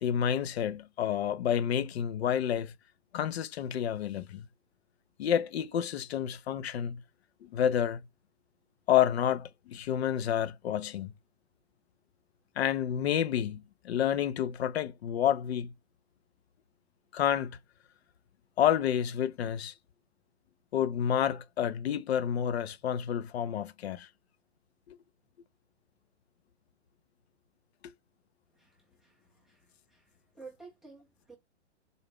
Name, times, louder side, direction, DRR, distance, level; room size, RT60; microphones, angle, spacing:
voice 1, 0.0-2.7 3.1-4.5 5.2-7.0 7.4-8.0 8.9-11.1 12.6-15.7 17.1-17.6 18.6-19.7 20.7-24.1 24.9-25.0 27.8-27.9, left 9 dB, 65° left, 0.5 m, -29 dB
voice 2, 28.6-30.1 30.3-31.4, right 4 dB, ahead, 0.3 m, -53 dB
3.9 x 2.1 x 3.3 m
hypercardioid pair, 130°, 35 cm